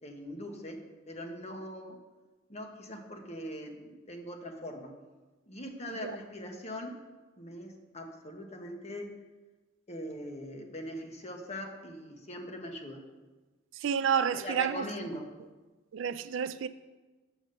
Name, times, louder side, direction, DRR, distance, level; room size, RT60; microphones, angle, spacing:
voice 1, 0.0-0.8 1.1-2.0 2.5-4.9 5.5-6.9 7.4-9.1 9.9-13.0 14.3-15.3, left 1 dB, 35° left, 1.1 m, -41 dB
voice 2, 13.7-14.9 15.9-16.7, right 7 dB, 75° right, 0.4 m, -30 dB
7.0 x 6.6 x 6.8 m
head